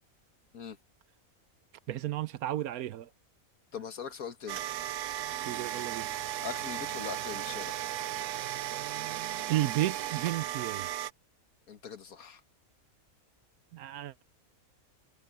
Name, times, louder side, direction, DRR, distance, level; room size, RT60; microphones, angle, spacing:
voice 1, 1.9-3.1 5.4-6.1 9.5-10.9 13.7-14.2, right 14 dB, 90° right, 1.2 m, -32 dB
voice 2, 3.7-4.6 6.4-7.8 11.7-12.4, left 7 dB, 80° left, 1.9 m, -41 dB
sound 1, 4.5-11.1, right 12 dB, 70° right, 0.9 m, -36 dB
omnidirectional pair, 1.5 m